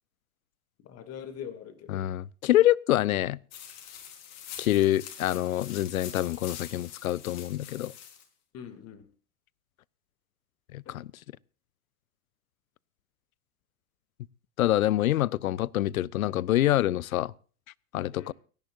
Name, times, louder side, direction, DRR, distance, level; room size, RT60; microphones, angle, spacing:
voice 1, 0.8-2.1 8.5-9.0 10.8-10.9 18.1-18.3, left 8 dB, 35° left, 2.5 m, -42 dB
voice 2, 1.9-3.4 4.6-7.9 10.7-11.1 14.6-17.3 17.9-18.3, left 14 dB, 65° left, 0.6 m, -26 dB
sound 1, 3.5-8.2, left 9 dB, 50° left, 4.3 m, -45 dB
30.0 x 10.5 x 2.6 m
figure-of-eight pair, 90°, 44 cm